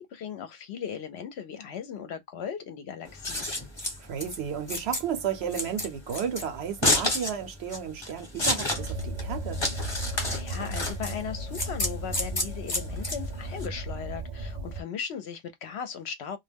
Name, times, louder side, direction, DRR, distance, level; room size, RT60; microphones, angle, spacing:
voice 1, 0.0-3.4 10.3-16.4, left 7 dB, 65° left, 0.8 m, -37 dB
Scissors, 3.1-13.7, left 1 dB, 25° left, 0.9 m, -30 dB
voice 2, 4.0-9.6, right 8 dB, 65° right, 0.8 m, -33 dB
sound 1, 8.7-14.8, right 1 dB, 85° right, 0.3 m, -35 dB
2.2 x 2.1 x 3.3 m
omnidirectional pair, 1.3 m